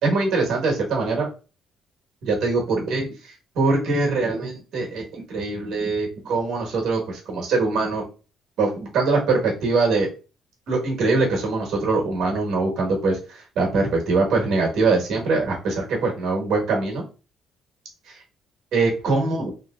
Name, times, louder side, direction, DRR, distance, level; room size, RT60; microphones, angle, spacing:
voice 1, 0.0-1.3 2.2-3.1 3.5-8.0 8.6-10.1 10.7-17.0 18.7-19.5, right 3 dB, 65° right, 0 dB, 1.3 m, -23 dB
3.0 x 2.9 x 2.4 m, 0.34 s
cardioid pair, 155°, 0 cm